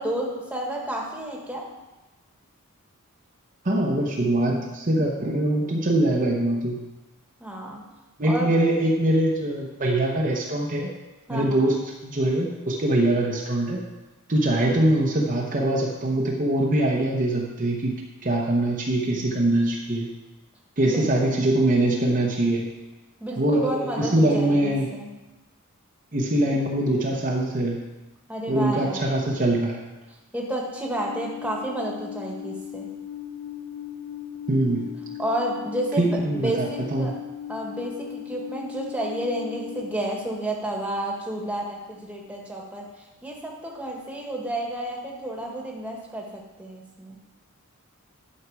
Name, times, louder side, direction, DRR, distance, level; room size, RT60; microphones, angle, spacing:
voice 1, 0.0-1.6 7.4-7.8 8.3-8.5 11.3-11.7 20.9-21.1 23.2-25.1 28.3-29.0 30.3-32.9 35.2-37.1 37.5-42.9 43.2-47.2, right 1 dB, 5° right, -2 dB, 1.5 m, -31 dB
voice 2, 3.6-6.8 8.2-10.9 11.3-13.8 14.3-20.1 20.8-22.7 23.4-24.9 26.1-27.9 28.5-29.8 34.5-35.0 36.0-37.1, right 1 dB, 40° right, -1 dB, 1.0 m, -23 dB
Alarm, 30.9-39.8, left 10 dB, 75° left, 1.0 m, -37 dB
11.0 x 6.5 x 4.7 m, 1.1 s
head